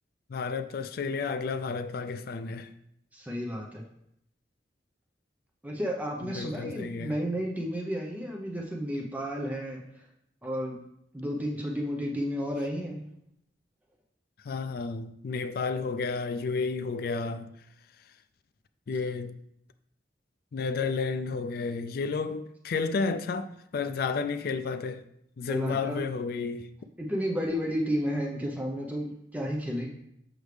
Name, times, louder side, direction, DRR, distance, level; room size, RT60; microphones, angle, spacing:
voice 1, 0.3-2.7 6.2-7.2 14.4-17.5 18.9-19.4 20.5-25.0 25.4-26.7, left 4 dB, 55° left, 0.3 m, -31 dB
voice 2, 3.1-3.8 5.6-9.8 10.4-10.8 11.1-13.0 25.5-26.0 27.0-29.9, equal, 10° right, 0.7 m, -32 dB
6.6 x 6.3 x 3.2 m
head